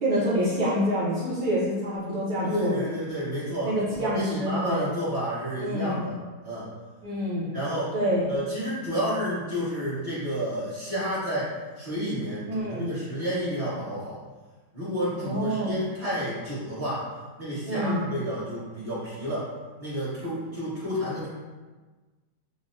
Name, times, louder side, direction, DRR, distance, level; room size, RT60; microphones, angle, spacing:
voice 1, 0.0-2.7 3.6-4.9 5.6-6.0 7.0-7.5 7.9-8.2 12.5-12.9 15.2-15.8 17.6-18.0, equal, 70° right, -9 dB, 0.4 m, -27 dB
voice 2, 2.4-6.1 6.4-6.7 7.5-7.9 8.3-14.2 14.7-17.1 17.4-19.5 19.8-21.3, equal, 25° right, -10 dB, 0.9 m, -30 dB
4.0 x 2.1 x 2.5 m, 1.3 s
omnidirectional pair, 1.9 m